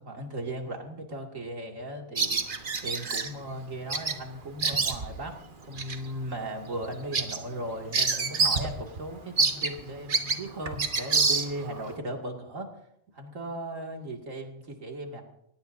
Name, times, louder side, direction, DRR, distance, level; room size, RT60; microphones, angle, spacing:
voice 1, 0.0-5.4 5.6-12.7 13.1-15.2, right 1 dB, 80° right, 1 dB, 2.8 m, -37 dB
Bird vocalization bird call bird song, 2.2-3.3 3.9-4.2 4.4-5.3 5.8-6.0 6.4-6.5 6.8-8.7 9.0-9.1 9.4-11.8, right 4 dB, 40° right, 1.3 m, -27 dB
22.0 x 19.5 x 2.7 m, 0.74 s
omnidirectional pair, 1.3 m